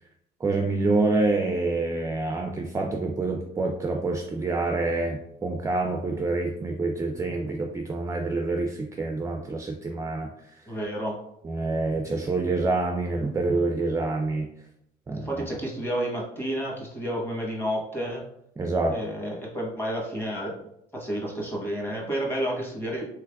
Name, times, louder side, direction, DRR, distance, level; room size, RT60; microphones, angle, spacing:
voice 1, 0.4-10.3 11.4-14.5 15.1-15.3 18.6-19.0, right 3 dB, 20° right, 3 dB, 0.3 m, -27 dB
voice 2, 10.7-11.2 15.1-18.2 18.9-20.6 20.9-23.1, equal, 10° left, -2 dB, 1.1 m, -30 dB
3.3 x 3.2 x 2.3 m, 0.75 s
cardioid pair, 110°, 17 cm